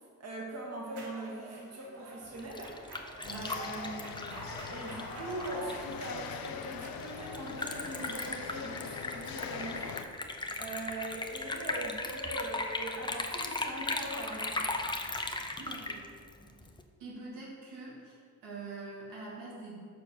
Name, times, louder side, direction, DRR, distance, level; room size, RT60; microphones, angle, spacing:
voice 1, 0.2-2.8 3.3-10.0 10.6-14.7, right 1 dB, 40° right, -3 dB, 1.8 m, -41 dB
sound 1, 0.9-12.9, right 2 dB, 70° right, 1.4 m, -49 dB
Liquid, 2.2-16.8, left 2 dB, 10° left, 0.6 m, -38 dB
sound 2, 3.2-10.0, left 8 dB, 60° left, 0.6 m, -43 dB
voice 2, 15.6-16.0 17.0-18.1 18.4-19.8, right 3 dB, 85° right, -5 dB, 2.1 m, -44 dB
6.8 x 4.5 x 6.2 m, 2.1 s
cardioid pair, 75°, 41 cm